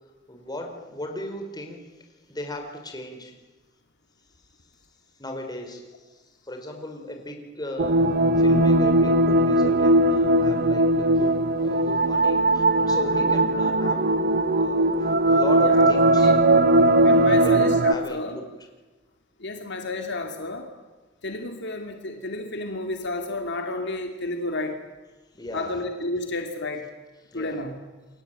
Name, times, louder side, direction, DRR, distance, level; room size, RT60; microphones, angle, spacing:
voice 1, 0.3-3.4 5.2-14.1 14.5-16.7 17.3-18.4 25.3-25.7 27.2-27.6, left 1 dB, 20° left, 3 dB, 4.6 m, -37 dB
sound 1, 7.8-17.9, right 1 dB, 50° right, 1.1 m, -19 dB
voice 2, 15.6-16.3 17.0-18.4 19.4-20.7 21.2-24.8 25.5-26.9 27.3-27.8, left 2 dB, 60° left, 4 dB, 2.7 m, -31 dB
29.0 x 22.5 x 9.1 m, 1.2 s
head